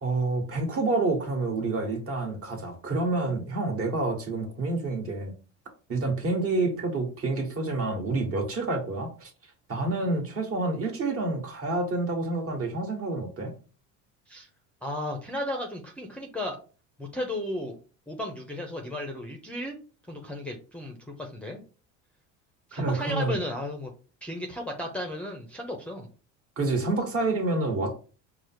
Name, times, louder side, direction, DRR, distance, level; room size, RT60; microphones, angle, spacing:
voice 1, 0.0-5.3 5.9-9.3 9.7-13.5 22.7-23.4 26.6-28.0, right 2 dB, 40° right, 1.5 m, -28 dB
voice 2, 14.8-16.6 17.0-17.8 18.1-19.8 20.1-21.6 22.7-23.9 24.2-26.1, left 1 dB, 5° left, 0.7 m, -34 dB
4.8 x 2.1 x 4.4 m
supercardioid pair, 110°, 36 cm